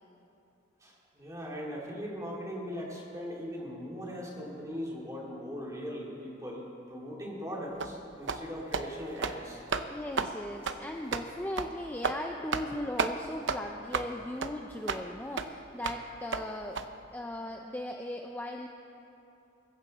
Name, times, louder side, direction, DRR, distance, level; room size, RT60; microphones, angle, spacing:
voice 1, 0.8-9.6, equal, 15° right, -3 dB, 2.5 m, -39 dB
sound 1, 7.8-7.9 8.3-8.4 8.7-8.9 9.2-9.4 9.7-9.9 10.2-10.3 10.7-10.8 11.1-11.3 11.6-11.7 12.0-12.2 12.5-12.7 13.0-13.1 13.5-13.6 13.9-14.1 14.4-14.5 14.9-15.0 15.4-15.5 15.8-16.0 16.3-16.4 16.8-16.9, right 5 dB, 65° right, 0.7 m, -31 dB
voice 2, 9.9-16.8 17.1-18.7, left 1 dB, 10° left, 2 dB, 0.5 m, -38 dB
22.5 x 14.5 x 4.2 m, 2.8 s
head